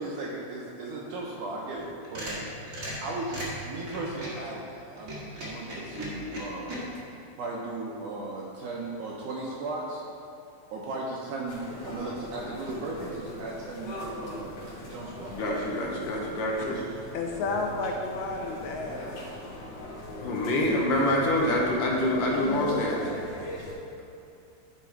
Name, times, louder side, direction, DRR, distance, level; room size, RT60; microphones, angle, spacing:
voice 1, 0.0-2.5 3.0-6.8 7.4-10.0 10.7-15.4 16.7-16.8, right 2 dB, 75° right, -3 dB, 1.9 m, -36 dB
sound 1, 1.8-4.4 5.0-6.8, right 1 dB, 40° right, 1.2 m, -37 dB
voice 2, 5.9-6.4 17.1-19.1 22.1-22.8, left 3 dB, 90° left, 1 dB, 2.9 m, -33 dB
sound 2, 11.5-23.7, left 1 dB, 55° left, 3.6 m, -40 dB
voice 3, 15.3-16.8 20.2-23.1, left 1 dB, 70° left, -2 dB, 2.3 m, -26 dB
12.0 x 5.2 x 4.5 m, 2.7 s
omnidirectional pair, 4.4 m